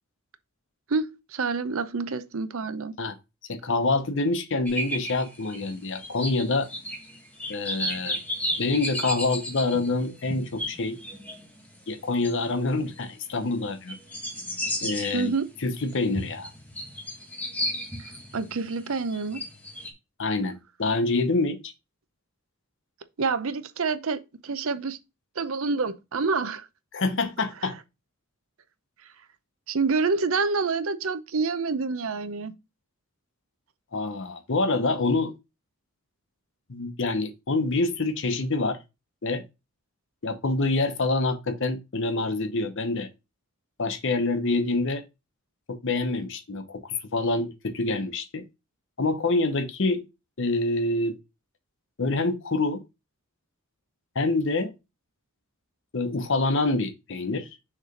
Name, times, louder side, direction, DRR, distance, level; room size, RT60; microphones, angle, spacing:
voice 1, 0.9-2.9 15.1-15.5 18.3-19.4 23.2-25.0 25.4-26.7 29.7-32.5, right 4 dB, 65° right, 0.6 m, -27 dB
voice 2, 3.5-6.7 7.5-8.2 8.6-11.0 11.9-14.0 14.8-15.3 15.6-16.5 20.2-21.6 26.9-27.8 33.9-35.3 36.7-38.8 39.2-39.4 40.2-43.1 43.8-45.0 45.7-48.4 49.0-50.0 50.4-51.2 52.0-52.8 54.1-54.7 55.9-57.5, left 3 dB, 55° left, 0.8 m, -26 dB
sound 1, 4.7-13.0 13.5-13.6 13.9-19.9, equal, 5° left, 1.2 m, -34 dB
6.5 x 3.2 x 5.1 m
head